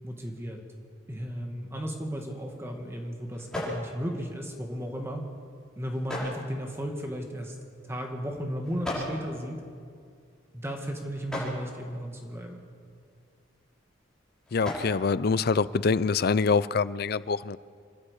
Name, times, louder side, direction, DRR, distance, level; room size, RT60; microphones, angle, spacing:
voice 1, 0.0-0.6 1.1-5.2 5.8-7.6 7.8-9.6 10.5-12.6, equal, 15° right, 2 dB, 1.9 m, -35 dB
sound 1, 1.9-16.2, left 1 dB, 5° left, 6.5 m, -42 dB
voice 2, 14.5-17.6, left 4 dB, 55° left, 17 dB, 0.5 m, -25 dB
27.0 x 12.0 x 8.4 m, 2.2 s
head